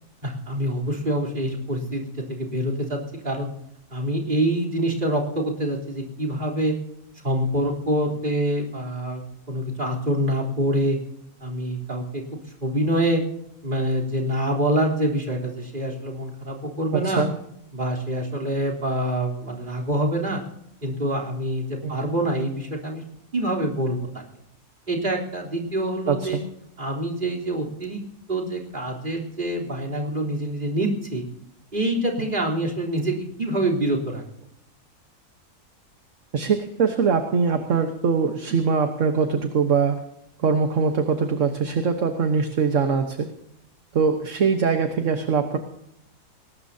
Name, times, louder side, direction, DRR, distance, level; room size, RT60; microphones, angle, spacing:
voice 1, 0.2-3.0 3.2-3.5 3.9-6.8 7.2-11.0 11.4-12.2 12.6-13.2 13.6-17.2 17.7-20.4 20.8-23.0 23.3-24.2 24.9-26.4 26.8-28.0 28.3-31.2 31.7-34.2, right 1 dB, 30° right, 3 dB, 3.8 m, -26 dB
voice 2, 17.0-17.4 21.8-22.0 26.1-26.4 36.3-40.0 40.4-43.3 43.9-45.6, right 5 dB, 55° right, 6 dB, 1.5 m, -22 dB
21.5 x 19.5 x 2.8 m, 0.79 s
omnidirectional pair, 1.7 m